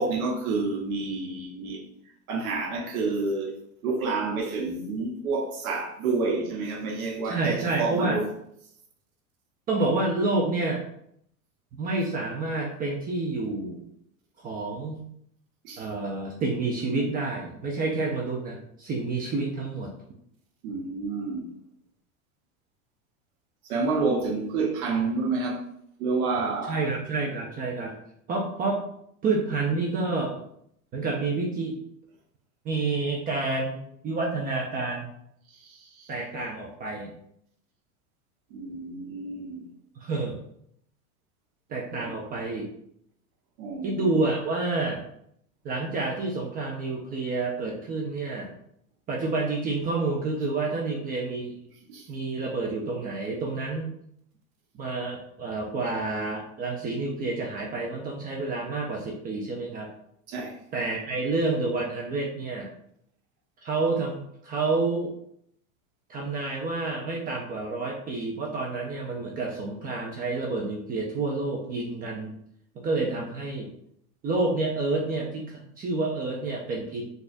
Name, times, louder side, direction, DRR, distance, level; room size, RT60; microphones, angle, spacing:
voice 1, 0.0-1.8 2.3-3.5 3.8-8.3 15.6-15.8 20.6-21.5 23.6-25.6 26.0-26.9 35.5-36.1 38.5-39.6 42.0-42.1 43.6-44.1 51.9-52.1 60.3-60.6, right 3 dB, 80° right, 0 dB, 1.0 m, -29 dB
voice 2, 7.2-8.2 9.7-10.8 11.8-13.8 14.4-15.1 15.8-19.9 26.7-27.9 28.3-28.8 29.2-30.3 30.9-31.8 32.6-35.1 36.1-37.1 40.0-40.4 41.7-42.7 43.8-45.0 45.6-48.5 49.1-51.6 52.1-54.0 54.7-59.9 60.7-62.7 63.6-65.1 66.1-72.3 72.8-73.7 74.2-77.1, right 3 dB, 25° right, -1 dB, 0.3 m, -29 dB
4.0 x 2.4 x 2.5 m, 0.71 s
hypercardioid pair, 110°, 43 cm